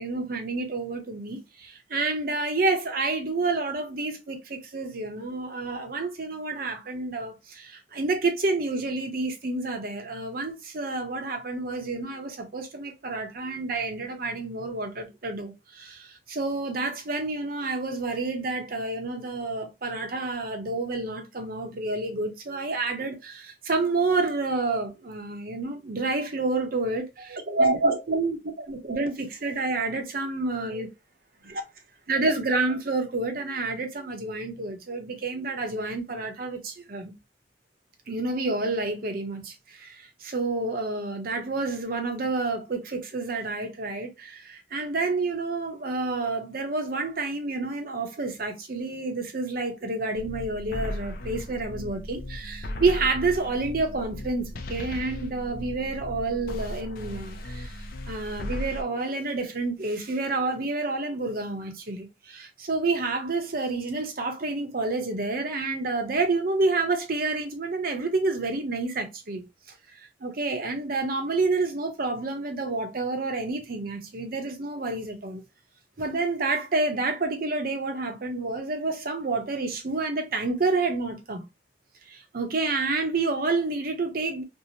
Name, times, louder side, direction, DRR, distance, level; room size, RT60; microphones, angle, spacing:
voice 1, 0.0-30.9 31.4-31.6 32.1-37.1 38.1-57.8 58.1-69.4 69.9-75.4 76.0-81.4 82.1-84.4, right 3 dB, 50° right, 0.6 m, -29 dB
sound 1, 50.1-58.8, left 1 dB, 50° left, 0.4 m, -36 dB
2.7 x 2.0 x 2.8 m
head